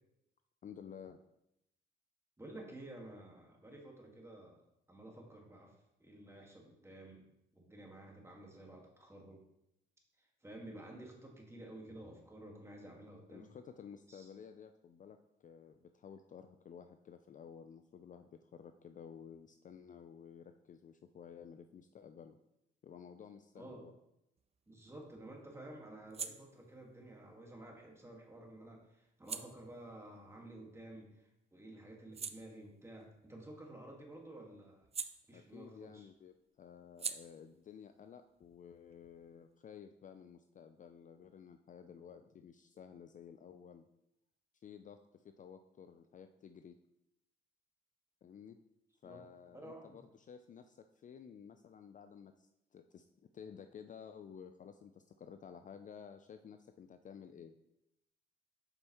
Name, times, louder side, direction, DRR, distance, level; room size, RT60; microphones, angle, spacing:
voice 1, 0.6-1.2 13.3-22.4 22.8-23.9 35.3-43.9 44.6-46.8 48.2-48.6 49.0-53.1 53.3-57.5, left 7 dB, 40° left, 8 dB, 0.4 m, -53 dB
voice 2, 2.4-4.6 4.9-7.3 7.5-9.4 10.2-13.5 14.1-14.3 23.6-23.9 24.7-34.9 35.3-36.1 49.0-49.2 49.5-50.0, right 1 dB, 15° right, 0 dB, 1.6 m, -52 dB
sound 1, 24.4-31.2 31.6-35.9 36.1-39.5, right 6 dB, 30° right, 0.4 m, -50 dB
7.9 x 5.4 x 3.0 m, 0.83 s
cardioid pair, 90°, 20 cm